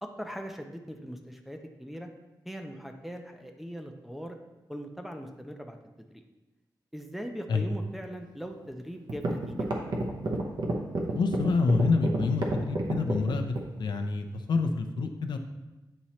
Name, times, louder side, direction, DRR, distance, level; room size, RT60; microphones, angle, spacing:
voice 1, 0.0-2.1 2.5-4.4 4.7-5.8 6.1-6.2 6.9-9.7, equal, ahead, 3 dB, 0.5 m, -40 dB
sound 1, 8.6-8.7 9.1-13.7, right 2 dB, 75° right, 0.8 m, -30 dB
voice 2, 11.1-15.4, left 4 dB, 75° left, 6 dB, 0.5 m, -27 dB
8.5 x 3.0 x 4.2 m, 1.1 s
wide cardioid pair, 165°, 8 cm